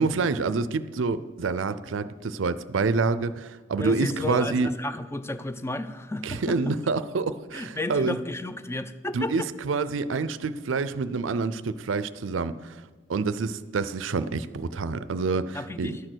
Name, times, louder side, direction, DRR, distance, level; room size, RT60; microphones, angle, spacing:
voice 1, 0.0-4.7 6.2-8.2 9.1-12.7 13.1-16.0, right 4 dB, 85° right, 0.5 m, -27 dB
voice 2, 3.8-6.7 7.5-9.5 15.5-16.0, left 2 dB, 15° left, 0.5 m, -33 dB
12.0 x 6.6 x 6.2 m
head